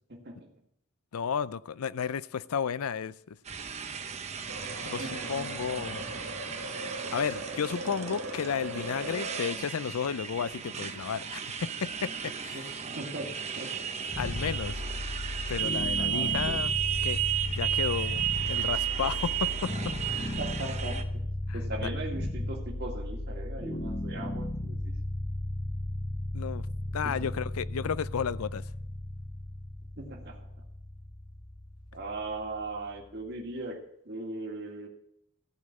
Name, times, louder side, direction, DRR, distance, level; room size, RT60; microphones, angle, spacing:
voice 1, 0.1-0.5 3.8-3.9 4.7-5.5 12.5-13.3 13.5-13.8 16.0-16.6 20.4-21.2 21.5-24.9 27.0-27.3 30.0-30.4 31.9-34.9, right 2 dB, 50° right, 2.0 m, -39 dB
voice 2, 1.1-3.4 4.6-6.0 7.1-12.7 14.2-14.8 15.5-16.7 17.0-17.2 17.5-20.4 21.5-21.9 26.3-26.7 26.9-28.6, left 7 dB, 85° left, 0.5 m, -33 dB
Motorcycle, 3.5-21.0, right 9 dB, 30° right, 0.8 m, -34 dB
sound 1, 4.5-9.5, right 1 dB, 80° right, 1.3 m, -40 dB
sound 2, 14.1-33.1, left 1 dB, 20° left, 0.6 m, -35 dB
14.5 x 5.3 x 8.2 m
head